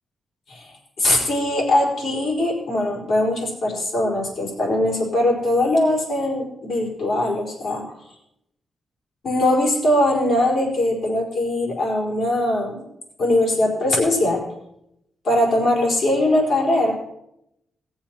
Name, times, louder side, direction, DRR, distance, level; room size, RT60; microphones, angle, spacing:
voice 1, 1.0-7.8 9.2-12.8 13.2-14.4 15.2-16.9, left 1 dB, 60° left, -2 dB, 4.6 m, -21 dB
18.0 x 7.2 x 5.9 m, 0.80 s
wide cardioid pair, 120°, 0 cm